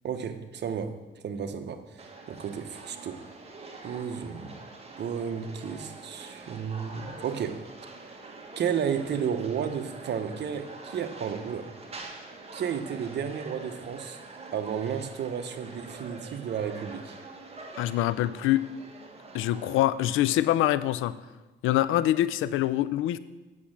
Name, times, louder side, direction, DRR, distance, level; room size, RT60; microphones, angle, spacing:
voice 1, 0.0-3.2 3.8-4.6 5.0-7.6 8.6-11.7 12.5-14.2 14.5-17.2, right 7 dB, 60° right, 8 dB, 1.0 m, -33 dB
sound 1, 2.0-19.8, right 3 dB, 30° right, 1.6 m, -45 dB
voice 2, 17.8-18.6 19.3-21.1 21.6-23.2, left 13 dB, 90° left, 16 dB, 0.5 m, -25 dB
8.5 x 6.4 x 7.3 m, 1.2 s
cardioid pair, 90°, 20 cm